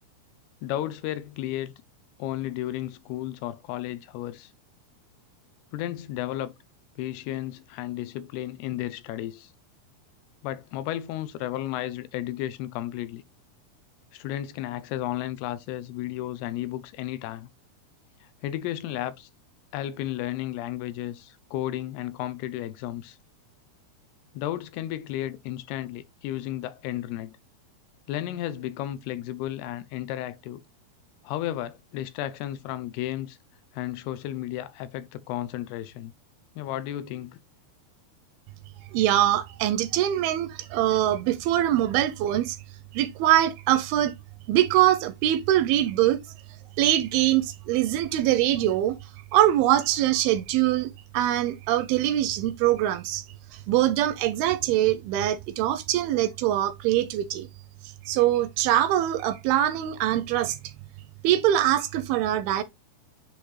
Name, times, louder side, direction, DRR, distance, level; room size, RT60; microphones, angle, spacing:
voice 1, 0.6-1.7 2.2-4.5 5.7-6.5 7.0-9.5 10.4-13.2 14.1-17.5 18.2-19.3 19.7-23.2 24.3-27.3 28.1-30.6 31.2-33.4 33.7-36.1 36.6-37.4, left 13 dB, 85° left, 2.6 m, -33 dB
voice 2, 38.9-42.6 42.9-44.1 44.5-46.2 46.8-49.0 49.3-53.2 53.5-57.5 58.1-60.6 61.2-62.6, right 13 dB, 80° right, 2.3 m, -23 dB
10.0 x 3.4 x 3.1 m
omnidirectional pair, 4.6 m